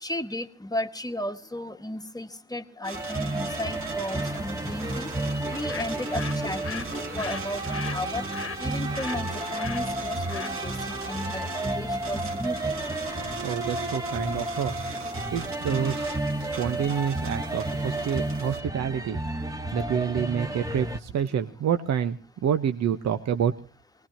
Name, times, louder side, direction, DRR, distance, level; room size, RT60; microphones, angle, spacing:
voice 1, 0.0-5.1 5.5-6.9 7.2-8.2 8.6-10.8 11.0-12.7, left 1 dB, 10° left, 8 dB, 1.4 m, -34 dB
sound 1, 2.8-18.6, right 4 dB, 45° right, 2.0 m, -40 dB
sound 2, 2.9-21.0, right 1 dB, 10° right, 1.4 m, -32 dB
Bird, 5.4-11.5, left 7 dB, 45° left, 1.3 m, -41 dB
voice 2, 13.3-14.8 15.3-19.2 19.7-23.5, right 8 dB, 60° right, 8 dB, 1.1 m, -28 dB
25.0 x 19.5 x 2.9 m, 0.36 s
cardioid pair, 90°, 30 cm